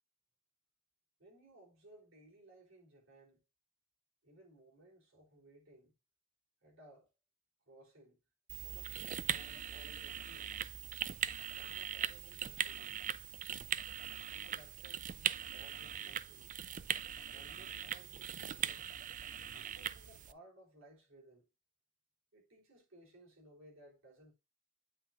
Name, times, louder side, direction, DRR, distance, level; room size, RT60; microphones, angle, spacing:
voice 1, 1.2-3.4 4.2-5.9 6.6-7.1 7.7-8.2 8.6-10.6 11.2-13.0 14.3-16.5 17.3-18.9 19.5-21.5 22.3-24.3, right 1 dB, 65° right, 3.7 m, -61 dB
sound 1, 8.5-20.3, right 9 dB, 40° right, 0.4 m, -40 dB
9.1 x 6.2 x 2.6 m
head